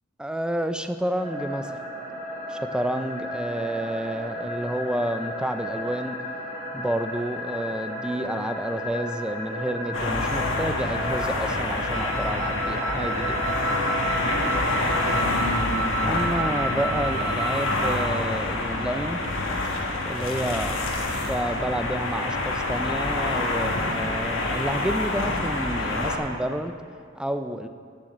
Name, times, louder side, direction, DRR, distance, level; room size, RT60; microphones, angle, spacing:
voice 1, 0.2-1.8 2.5-6.2 6.7-13.4 16.0-19.2 20.0-26.7 27.1-27.7, right 1 dB, 5° right, 8 dB, 0.4 m, -30 dB
sound 1, 1.2-15.2, left 1 dB, 40° right, 2.1 m, -34 dB
sound 2, 9.9-26.2, left 2 dB, 75° left, 1.3 m, -27 dB
Wind instrument woodwind instrument, 11.9-18.1, right 4 dB, 80° right, 0.7 m, -31 dB
9.0 x 7.3 x 7.2 m, 2.2 s
head